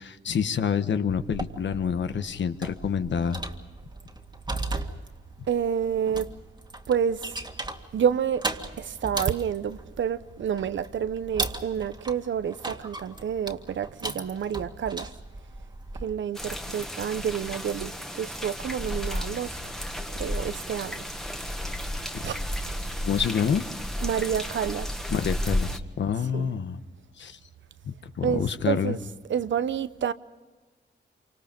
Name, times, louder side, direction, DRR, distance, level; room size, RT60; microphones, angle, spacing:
voice 1, 0.0-3.4 23.0-23.6 25.1-26.8 27.2-27.4 27.8-29.0, left 7 dB, 70° left, 1.3 m, -27 dB
sound 1, 1.1-16.1, right 2 dB, 20° right, 2.0 m, -37 dB
voice 2, 5.5-6.3 6.9-7.4 7.9-15.1 16.0-19.8 20.1-21.1 21.5-21.6 22.2-22.3 24.0-25.0 26.3-26.6 28.2-30.1, right 8 dB, 75° right, 0.9 m, -29 dB
sound 2, 16.3-25.8, left 1 dB, ahead, 1.6 m, -33 dB
27.5 x 25.5 x 5.3 m
cardioid pair, 85°, 20 cm